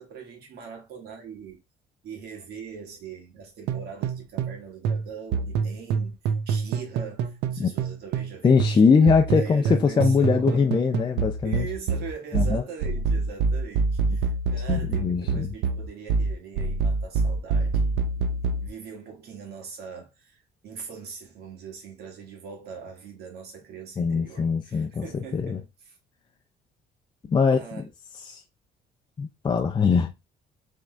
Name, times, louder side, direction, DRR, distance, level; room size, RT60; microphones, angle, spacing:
voice 1, 0.0-1.6 2.0-6.2 6.5-10.7 11.4-26.0 27.4-27.8, right 6 dB, 70° right, 2.0 m, -41 dB
sound 1, 3.7-4.6 4.8-8.3 8.6-18.7, right 4 dB, 85° right, 0.7 m, -26 dB
voice 2, 8.4-11.7 12.3-12.6 14.7-15.5 24.0-25.1 25.3-25.6 27.3-27.6 28.3-28.4 29.2-30.1, left 5 dB, 25° left, 0.5 m, -21 dB
3.7 x 3.6 x 3.3 m
cardioid pair, 110°, 17 cm